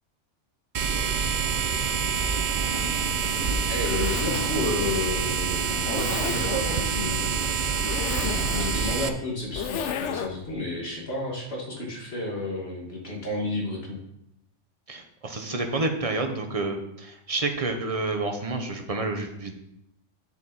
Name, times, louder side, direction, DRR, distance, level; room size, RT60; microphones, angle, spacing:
sound 1, 0.7-9.1, right 6 dB, 50° right, 0.6 m, -26 dB
Zipper (clothing), 2.6-10.5, left 8 dB, 75° left, 1.0 m, -34 dB
voice 1, 3.7-7.9 8.2-14.0, left 2 dB, 55° left, -2 dB, 2.3 m, -32 dB
voice 2, 14.9-19.5, right 3 dB, 30° right, 4 dB, 1.0 m, -29 dB
8.9 x 7.1 x 4.1 m, 0.81 s
omnidirectional pair, 1.2 m